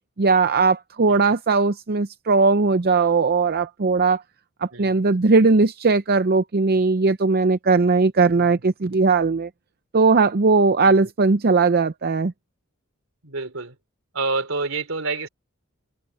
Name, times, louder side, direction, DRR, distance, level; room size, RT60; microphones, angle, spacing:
voice 1, 0.2-4.2 4.6-9.5 9.9-12.3, right 4 dB, 45° right, 0.6 m, -19 dB
voice 2, 4.7-5.0 10.8-11.1 13.2-13.8 14.1-15.3, right 3 dB, 70° right, 3.9 m, -29 dB
head